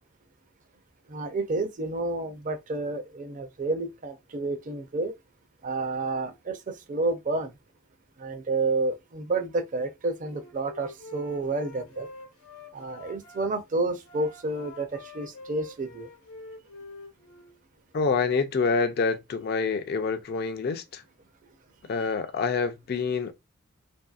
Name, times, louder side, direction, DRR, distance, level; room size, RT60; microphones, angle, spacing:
voice 1, 1.1-5.1 5.6-7.5 8.2-12.1 12.7-16.1, right 3 dB, 35° right, 0.4 m, -30 dB
Wind instrument woodwind instrument, 10.1-13.4 14.0-17.6, left 2 dB, 80° left, 0.9 m, -46 dB
voice 2, 17.9-21.0 21.9-23.3, left 4 dB, 45° left, 0.3 m, -27 dB
2.7 x 2.6 x 2.3 m
head